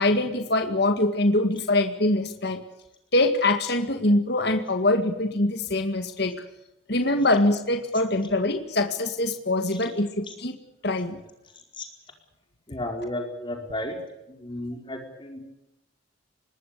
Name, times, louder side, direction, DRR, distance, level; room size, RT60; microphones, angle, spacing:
voice 1, 0.0-2.6 3.1-6.4 6.9-10.6 10.8-11.2, left 2 dB, 55° left, 6 dB, 2.0 m, -23 dB
voice 2, 12.7-14.0 14.3-15.4, left 1 dB, 25° left, 4 dB, 4.7 m, -33 dB
25.0 x 21.0 x 6.9 m, 0.91 s
head